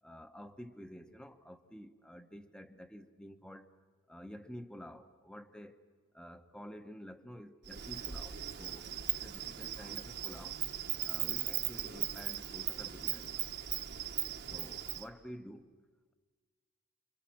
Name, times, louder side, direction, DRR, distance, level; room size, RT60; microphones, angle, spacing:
voice 1, 0.0-3.7 4.1-5.8 6.1-10.6 11.0-13.4 14.5-15.7, equal, 5° left, 1.0 m, -50 dB
Insect, 7.7-15.1, right 12 dB, 50° right, 1.2 m, -38 dB
28.0 x 24.5 x 7.5 m
head